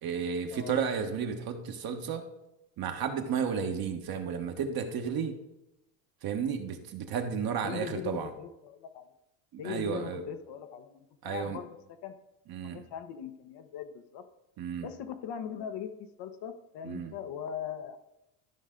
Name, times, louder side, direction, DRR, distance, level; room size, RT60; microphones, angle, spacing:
voice 1, 0.0-2.2 2.8-5.4 6.2-8.3 9.5-10.2 11.2-11.6 12.5-12.8 14.6-14.9 16.8-17.1, right 7 dB, 50° right, 5 dB, 1.4 m, -33 dB
voice 2, 7.6-9.1 9.6-11.8 12.0-12.1 12.6-14.2 14.8-15.9 16.2-18.0, left 8 dB, 55° left, 7 dB, 1.1 m, -40 dB
13.0 x 5.4 x 3.8 m, 0.88 s
supercardioid pair, 90°, 47 cm